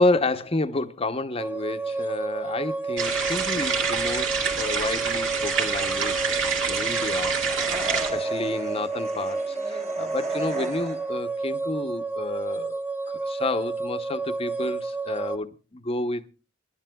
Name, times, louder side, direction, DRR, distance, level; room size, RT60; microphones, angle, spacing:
voice 1, 0.0-7.4 7.8-12.8 13.1-16.2, left 2 dB, 30° left, 0.8 m, -30 dB
sound 1, 1.4-15.4, right 3 dB, 10° right, 0.9 m, -31 dB
sound 2, 3.0-8.1, right 5 dB, 75° right, 2.5 m, -27 dB
sound 3, 7.4-11.3, right 2 dB, 35° right, 1.4 m, -35 dB
28.0 x 11.5 x 2.3 m
head